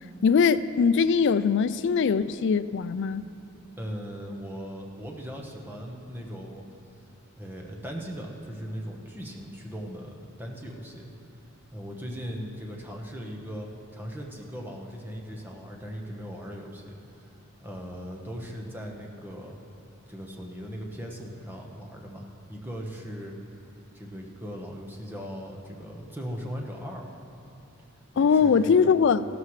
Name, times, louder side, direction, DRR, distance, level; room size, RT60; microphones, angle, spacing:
voice 1, 0.2-3.2 28.2-29.3, left 6 dB, 55° left, 0.3 m, -21 dB
voice 2, 3.8-6.6 7.4-11.1 11.7-19.6 20.1-23.3 23.9-27.1 28.1-28.9, equal, 10° right, 1.1 m, -39 dB
16.0 x 13.0 x 3.2 m
head